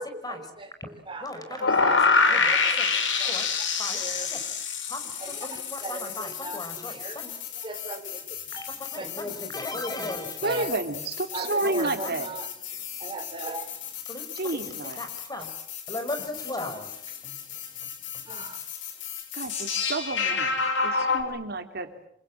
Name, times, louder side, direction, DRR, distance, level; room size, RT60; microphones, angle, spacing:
voice 1, 0.0-2.8 3.2-3.3 3.9-4.3 5.2-7.2 7.6-8.6 8.9-9.2 10.4-10.7 11.3-12.5 13.0-13.8 18.3-18.6, right 2 dB, 25° right, 6 dB, 4.2 m, -39 dB
voice 2, 1.2-2.0 2.3-2.5 2.8-2.9 3.3-3.5 3.8-4.0 4.3-4.4 4.9-7.3 8.6-10.6 11.6-12.2 14.1-14.2 14.5-14.6 15.0-15.5 15.9-17.4, left 2 dB, 20° left, 7 dB, 5.5 m, -37 dB
sound 1, 1.6-21.2, left 5 dB, 85° left, 5.6 m, -29 dB
voice 3, 10.4-12.3 14.3-15.0 19.3-21.9, right 2 dB, 60° right, 7 dB, 3.3 m, -30 dB
28.0 x 26.5 x 7.6 m, 0.71 s
head